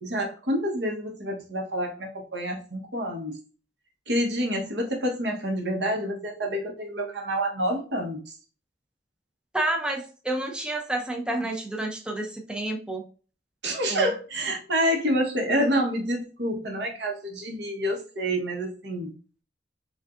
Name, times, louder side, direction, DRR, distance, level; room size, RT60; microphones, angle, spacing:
voice 1, 0.0-3.4 4.1-8.2 13.6-19.1, equal, 75° right, 1 dB, 1.1 m, -28 dB
voice 2, 9.5-13.0 13.9-14.1, right 1 dB, 5° right, 2 dB, 0.5 m, -29 dB
4.7 x 2.6 x 2.5 m, 0.37 s
head